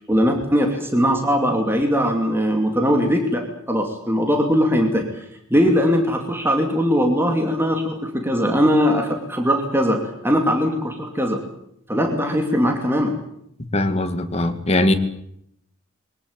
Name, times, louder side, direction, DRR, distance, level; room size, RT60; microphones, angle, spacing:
voice 1, 0.1-5.1 5.5-11.4 11.9-13.2, equal, 10° right, 3 dB, 2.7 m, -20 dB
voice 2, 13.7-14.9, left 1 dB, 30° left, 7 dB, 2.0 m, -20 dB
22.5 x 19.0 x 9.0 m, 0.74 s
head